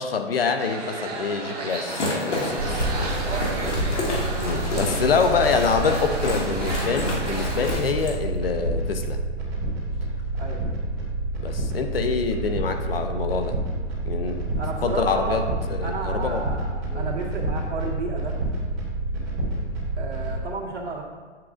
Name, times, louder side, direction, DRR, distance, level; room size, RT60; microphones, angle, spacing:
voice 1, 0.0-2.9 4.4-9.2 11.4-13.6 14.1-14.4 14.8-15.4 15.7-16.4 16.9-17.1, left 5 dB, 50° left, 6 dB, 0.6 m, -26 dB
sound 1, 0.6-7.8, right 3 dB, 35° right, 0.9 m, -34 dB
sound 2, 1.7-8.2, left 1 dB, 70° left, 1.8 m, -30 dB
sound 3, 2.6-20.3, right 2 dB, 5° right, 0.7 m, -28 dB
voice 2, 3.3-3.8 10.4-10.6 14.6-15.5 15.8-18.3 20.0-21.0, right 3 dB, 70° right, -2 dB, 1.8 m, -32 dB
7.5 x 7.3 x 2.5 m, 1.5 s
hypercardioid pair, 170°, 36 cm